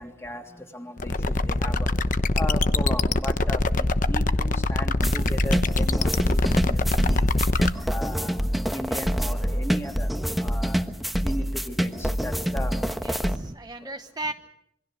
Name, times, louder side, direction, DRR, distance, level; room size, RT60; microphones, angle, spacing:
voice 1, 0.0-1.9 2.3-7.2 7.6-8.4 8.7-10.1 10.4-10.8 11.2-12.8 13.2-13.4 13.8-13.9, left 1 dB, 15° left, 3 dB, 3.1 m, -36 dB
sound 1, 1.0-7.7, left 2 dB, 50° left, 1.0 m, -23 dB
sound 2, 5.0-13.4, equal, ahead, 1.2 m, -26 dB
voice 2, 13.0-14.3, right 2 dB, 25° right, 6 dB, 0.9 m, -35 dB
27.5 x 24.0 x 6.4 m, 0.72 s
head